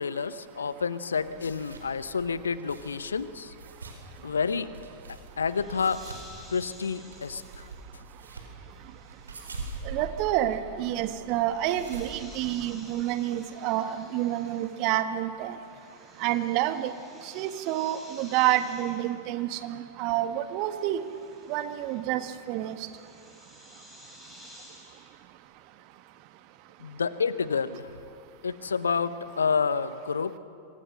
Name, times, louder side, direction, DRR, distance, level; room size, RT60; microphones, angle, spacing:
voice 1, 0.0-3.5 4.2-4.7 5.4-6.0 6.5-7.6 26.8-27.9 28.4-30.4, left 5 dB, 70° left, 15 dB, 0.9 m, -29 dB
sound 1, 1.1-13.1, right 3 dB, 75° right, 4.5 m, -44 dB
sound 2, 5.4-15.2 15.4-25.2, left 1 dB, 5° left, 6.9 m, -54 dB
voice 2, 9.8-15.5 16.2-16.9 17.3-21.0 21.5-22.8, right 13 dB, 45° right, 9 dB, 1.5 m, -28 dB
26.5 x 25.0 x 6.6 m, 2.6 s
figure-of-eight pair, 90°, 0 cm